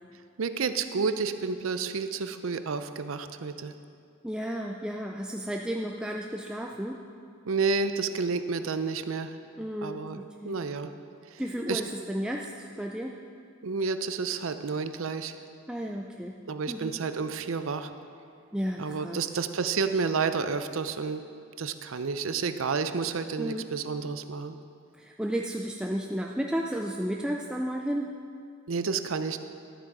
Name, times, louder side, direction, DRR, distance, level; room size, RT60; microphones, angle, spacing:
voice 1, 0.4-3.7 7.5-9.4 9.8-10.9 11.3-11.4 11.7-11.8 13.6-15.4 16.5-17.9 18.8-21.2 21.6-24.6 28.7-29.4, right 5 dB, 75° right, 10 dB, 0.5 m, -30 dB
voice 2, 4.2-7.0 9.6-10.6 11.4-13.2 15.7-16.4 16.7-17.0 18.5-19.2 23.4-23.6 25.0-28.1, equal, 5° right, 0 dB, 0.3 m, -33 dB
11.5 x 8.6 x 4.7 m, 2.4 s
head